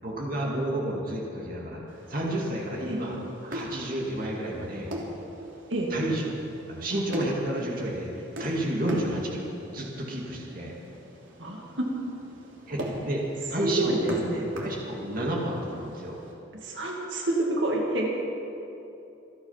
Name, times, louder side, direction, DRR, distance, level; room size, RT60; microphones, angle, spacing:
voice 1, 0.0-3.2 3.4-4.9 5.9-6.2 6.7-9.4 9.7-10.7 12.7-13.2 13.5-14.2 14.6-16.2, right 1 dB, 45° right, -3 dB, 2.3 m, -31 dB
sound 1, 1.9-16.3, equal, 80° right, 3.1 m, -41 dB
voice 2, 11.4-11.9 13.6-14.5 16.6-18.1, right 1 dB, 60° right, -1 dB, 2.3 m, -28 dB
27.0 x 9.0 x 5.8 m, 2.9 s
head